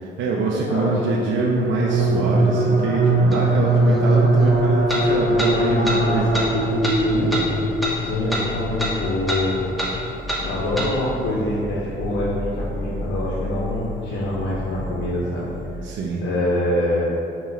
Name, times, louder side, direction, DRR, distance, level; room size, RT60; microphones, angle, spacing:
voice 1, 0.0-6.5 15.8-16.3, right 3 dB, 70° right, -2 dB, 0.4 m, -24 dB
voice 2, 0.7-1.0 6.9-7.3 8.0-9.6 10.4-15.5 16.2-17.1, left 1 dB, 65° left, -7 dB, 0.7 m, -25 dB
sound 1, 1.2-8.1, right 2 dB, 40° right, 0.9 m, -20 dB
sound 2, 3.3-3.4 4.9-5.0 5.4-5.5 5.8-6.0 6.3-6.5 6.8-7.0 7.3-7.4 7.8-8.0 8.3-8.5 8.8-8.9 9.3-9.4 9.8-9.9 10.3-10.4 10.8-10.9, equal, ahead, 0.6 m, -25 dB
sound 3, 4.4-15.7, left 2 dB, 45° left, 1.2 m, -33 dB
4.2 x 2.1 x 3.8 m, 2.7 s
cardioid pair, 90°, 20 cm